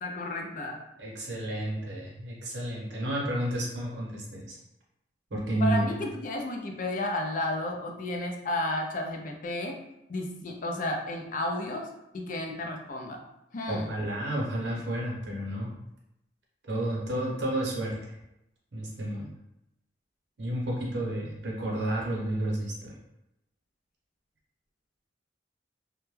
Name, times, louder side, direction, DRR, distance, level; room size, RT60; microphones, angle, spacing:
voice 1, 0.0-0.8 5.6-9.8 10.1-13.2 13.5-13.9, left 1 dB, 50° left, 2 dB, 0.4 m, -32 dB
voice 2, 1.0-4.6 5.3-6.0 13.7-15.7 16.7-18.2 18.7-19.3 20.4-22.9, right 1 dB, 75° right, -3 dB, 0.7 m, -31 dB
2.1 x 2.1 x 3.1 m, 0.87 s
head